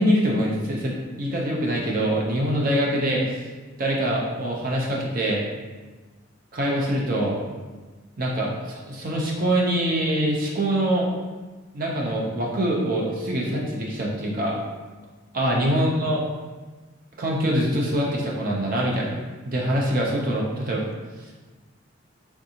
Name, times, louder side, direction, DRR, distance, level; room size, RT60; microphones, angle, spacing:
voice 1, 0.0-3.4 3.8-5.4 6.5-7.4 8.2-8.5 8.9-11.1 11.7-14.6 15.3-16.2 17.2-19.2 19.4-20.9, right 1 dB, 40° right, -2 dB, 0.6 m, -24 dB
3.5 x 2.6 x 2.8 m, 1.3 s
head